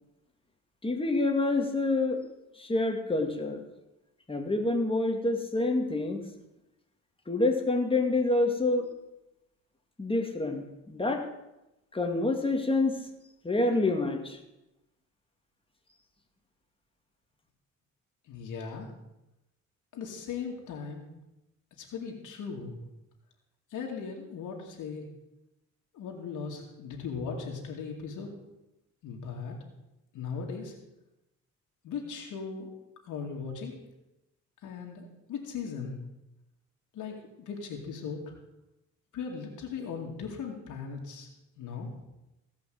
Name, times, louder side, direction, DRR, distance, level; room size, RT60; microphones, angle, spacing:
voice 1, 0.8-2.2 2.6-3.6 4.3-6.2 7.3-8.9 10.0-11.2 11.9-13.0 13.4-14.4, left 2 dB, 20° left, 4 dB, 2.2 m, -27 dB
voice 2, 18.3-18.9 19.9-21.1 21.8-22.8 23.7-25.1 25.9-28.3 29.0-29.5 30.1-30.7 31.8-32.7 33.1-33.8 34.6-36.0 36.9-38.3 39.1-41.3 41.6-41.9, left 5 dB, 80° left, -1 dB, 2.4 m, -38 dB
16.5 x 5.6 x 7.8 m, 0.93 s
cardioid pair, 90°, 30 cm